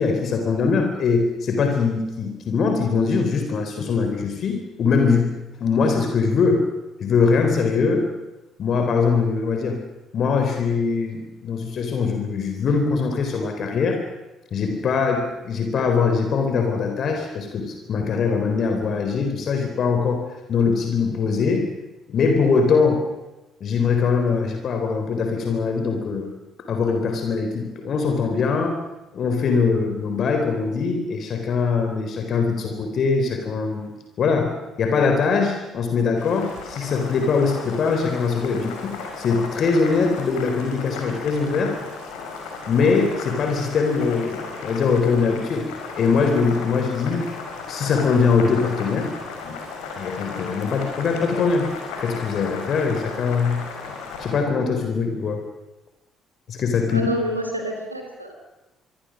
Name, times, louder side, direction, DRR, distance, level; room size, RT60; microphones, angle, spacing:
voice 1, 0.0-5.4 5.6-6.6 7.0-8.1 8.6-9.8 10.1-14.0 14.5-20.2 20.5-21.7 22.1-23.0 23.6-26.3 26.7-28.8 29.1-41.7 42.7-45.7 46.0-47.3 47.7-49.1 49.4-49.6 50.0-51.7 52.0-53.6 54.2-55.4 56.5-57.1, left 5 dB, 50° left, 5 dB, 4.0 m, -22 dB
Boiling, 36.1-54.4, left 4 dB, 65° left, 5.4 m, -35 dB
voice 2, 56.9-58.3, right 1 dB, 90° right, 3 dB, 3.2 m, -28 dB
26.0 x 24.5 x 6.4 m, 1.0 s
figure-of-eight pair, 45°, 0 cm